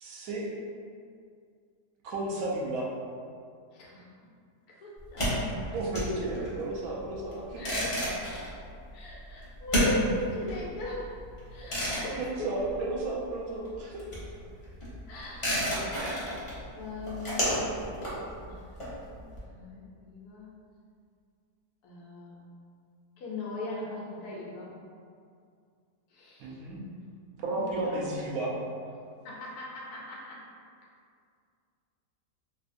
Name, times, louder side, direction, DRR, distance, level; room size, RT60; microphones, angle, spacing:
voice 1, 0.0-0.5 2.0-2.9 5.7-7.8 11.6-11.7 12.2-14.0 15.9-16.3 26.4-26.8 27.4-28.5, right 2 dB, 70° right, -4 dB, 1.0 m, -33 dB
voice 2, 3.7-4.1 4.7-5.2 7.6-7.9 8.9-11.2 11.5-12.7 15.1-16.5 16.7-17.7 18.4-18.7 19.1-20.5 21.8-22.4 23.2-24.7 26.1-26.6 27.5-28.4 29.2-30.4, left 1 dB, 70° left, -4 dB, 1.1 m, -40 dB
sound 1, 5.0-13.3 13.6-19.4, equal, 35° left, 0.5 m, -32 dB
3.1 x 2.7 x 2.5 m, 2.2 s
omnidirectional pair, 1.7 m